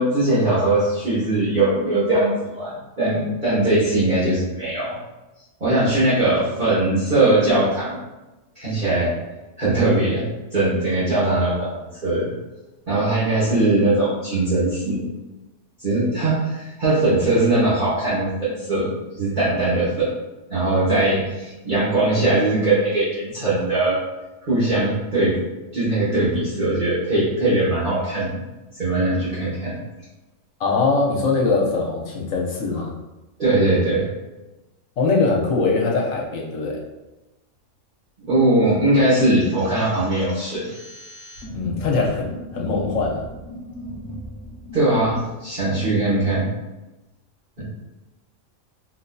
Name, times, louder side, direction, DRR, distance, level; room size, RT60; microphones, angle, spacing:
voice 1, 0.0-4.9 5.6-8.0 8.5-9.2 9.6-12.3 12.9-15.0 15.8-18.9 19.2-20.1 20.5-24.0 24.4-25.4 25.7-28.4 28.7-29.8 33.4-34.1 38.3-40.7 44.7-46.5 47.6-47.7, right 2 dB, 40° right, -12 dB, 1.2 m, -20 dB
voice 2, 30.6-32.9 35.0-36.8 41.5-43.3 47.6-47.7, left 3 dB, 80° left, -1 dB, 1.1 m, -22 dB
sound 1, 39.4-45.2, equal, 35° left, 1.3 m, -37 dB
4.2 x 2.6 x 2.2 m, 1.0 s
omnidirectional pair, 1.3 m